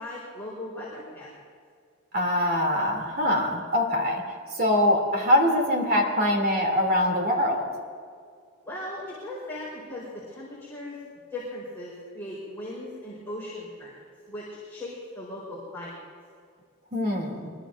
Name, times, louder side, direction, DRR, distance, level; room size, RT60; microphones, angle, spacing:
voice 1, 0.0-1.4 8.6-11.0 11.3-14.0 14.3-15.9, left 1 dB, 10° left, -8 dB, 4.5 m, -38 dB
voice 2, 2.1-4.2 4.5-7.6 16.9-17.5, left 1 dB, 50° right, 0 dB, 3.1 m, -23 dB
24.5 x 21.5 x 2.7 m, 2.2 s
head